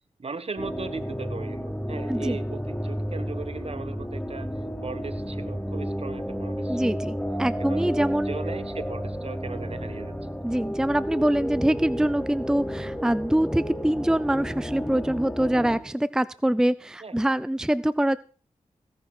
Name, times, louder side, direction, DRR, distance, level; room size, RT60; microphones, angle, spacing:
voice 1, 0.2-4.5 4.8-6.9 7.6-10.1 17.0-17.3, right 4 dB, 50° right, 13 dB, 1.4 m, -38 dB
sound 1, 0.6-15.8, equal, 10° left, 4.2 m, -32 dB
voice 2, 6.7-8.3 10.4-18.2, right 1 dB, 5° right, 16 dB, 0.6 m, -24 dB
17.0 x 10.5 x 4.4 m, 0.38 s
cardioid pair, 50°, 13 cm